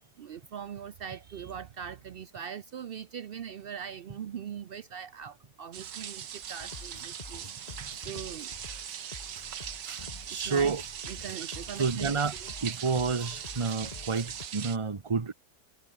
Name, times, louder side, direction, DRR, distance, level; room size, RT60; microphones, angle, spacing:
voice 1, 0.2-7.5 8.0-8.5 10.2-10.7 11.1-12.1 12.4-12.5, right 8 dB, 70° right, 0.5 m, -41 dB
sound 1, 5.7-14.8, right 9 dB, 90° right, 1.9 m, -40 dB
sound 2, 6.4-14.5, left 3 dB, 25° left, 2.1 m, -47 dB
voice 2, 9.8-10.8 11.8-12.3 12.6-15.3, right 5 dB, 25° right, 0.8 m, -30 dB
omnidirectional pair, 1.8 m